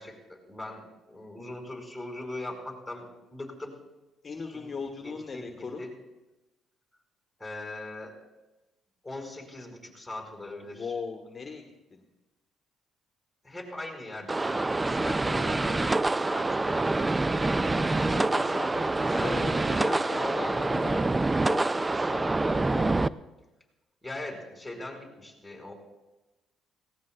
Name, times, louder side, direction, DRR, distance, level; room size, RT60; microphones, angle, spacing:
voice 1, 0.0-3.8 4.5-4.7 5.0-6.0 7.4-8.1 9.0-10.9 13.4-16.9 18.7-20.1 24.0-25.7, left 2 dB, 5° left, 0 dB, 5.3 m, -41 dB
voice 2, 4.2-5.8 10.7-11.6 11.9-12.0 18.1-21.7 21.9-22.9, left 4 dB, 40° left, 3 dB, 1.4 m, -38 dB
sound 1, 14.3-23.1, right 2 dB, 20° right, 0.3 m, -26 dB
18.5 x 17.5 x 2.4 m, 1.1 s
supercardioid pair, 70°, 0 cm